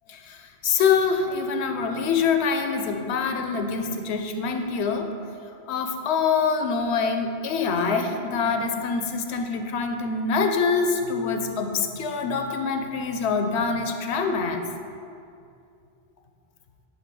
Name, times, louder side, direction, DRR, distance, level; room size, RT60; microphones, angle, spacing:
voice 1, 0.2-5.1 5.7-14.6, left 5 dB, 90° left, 5 dB, 0.9 m, -25 dB
5.0 x 4.5 x 4.6 m, 2.5 s
omnidirectional pair, 1.1 m